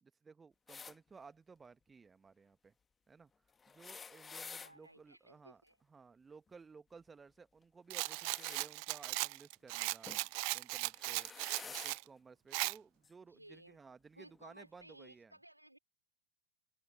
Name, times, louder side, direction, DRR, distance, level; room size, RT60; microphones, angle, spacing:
voice 1, 0.0-2.7 3.1-3.3 3.7-5.6 5.9-10.1 10.5-11.3 11.6-15.3, right 5 dB, 15° right, 1.3 m, -57 dB
sound 1, 0.7-1.0 3.6-4.7 7.9-8.7 10.1-10.3 10.9-12.0 13.0-13.1 14.3-14.4, left 5 dB, 15° left, 1.5 m, -50 dB
voice 2, 4.4-5.8 13.2-13.8 14.2-15.8, right 1 dB, 85° right, 5.0 m, -58 dB
Rattle, 7.9-12.0 12.5-12.8, right 40 dB or more, 45° right, 0.4 m, -38 dB
open air
figure-of-eight pair, 90°, 0 cm